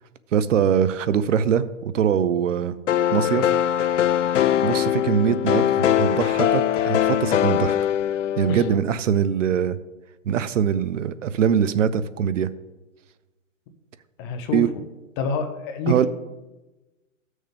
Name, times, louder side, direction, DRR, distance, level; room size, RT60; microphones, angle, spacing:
voice 1, 0.3-2.8 3.1-3.5 4.6-7.7 8.4-9.8 10.3-12.5 14.5-14.7 15.9-16.1, right 8 dB, 70° right, 15 dB, 0.7 m, -22 dB
sound 1, 2.9-8.8, left 11 dB, 65° left, 0.6 m, -21 dB
voice 2, 14.2-14.6 15.2-16.1, left 4 dB, 20° left, 7 dB, 0.6 m, -27 dB
14.5 x 6.4 x 3.5 m, 1.1 s
hypercardioid pair, 145°, 39 cm